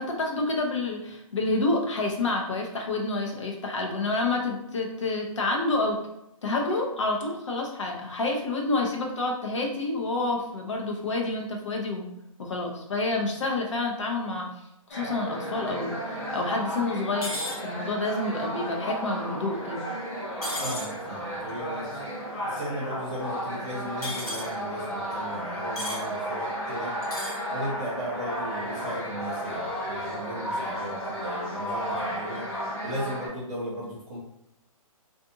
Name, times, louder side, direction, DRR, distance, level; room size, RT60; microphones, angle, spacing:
voice 1, 0.0-6.0 6.4-12.1 12.4-14.5 14.9-19.9, left 2 dB, 55° left, 0 dB, 0.8 m, -28 dB
sound 1, 14.9-33.3, equal, 30° left, 1.2 m, -33 dB
sound 2, 17.2-17.6 20.4-20.9 24.0-24.5 25.8-26.0 27.0-27.4, left 1 dB, 80° left, 1.3 m, -33 dB
voice 2, 20.6-22.1 22.4-26.9 27.5-32.4 32.8-34.2, equal, 10° right, -9 dB, 0.4 m, -36 dB
2.6 x 2.5 x 3.7 m, 0.83 s
hypercardioid pair, 170°, 19 cm